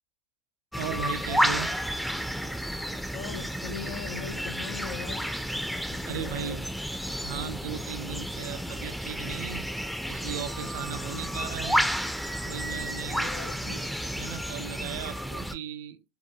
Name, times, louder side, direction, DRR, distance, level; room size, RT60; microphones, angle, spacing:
sound 1, 0.7-15.5, equal, ahead, 0.4 m, -31 dB
voice 1, 0.8-1.7 6.1-6.7 7.2-9.7 10.1-11.8 12.4-13.3 13.6-13.9 14.1-16.0, right 7 dB, 75° right, 0.3 m, -37 dB
voice 2, 3.1-5.2 5.8-6.6 13.2-13.6, left 8 dB, 70° left, 0.3 m, -40 dB
2.8 x 2.2 x 2.7 m
hypercardioid pair, 80°, 0 cm